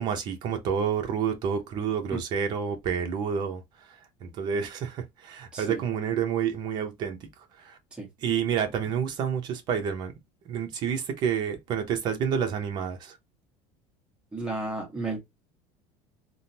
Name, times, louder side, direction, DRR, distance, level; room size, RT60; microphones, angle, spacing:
voice 1, 0.0-3.6 4.2-7.2 7.6-7.8 8.2-10.1 10.5-13.1, right 7 dB, 40° right, 0.8 m, -29 dB
voice 2, 5.5-5.8 7.9-8.1 14.3-15.2, right 2 dB, 10° right, 1.2 m, -33 dB
3.5 x 2.2 x 2.7 m
cardioid pair, 165°, 12 cm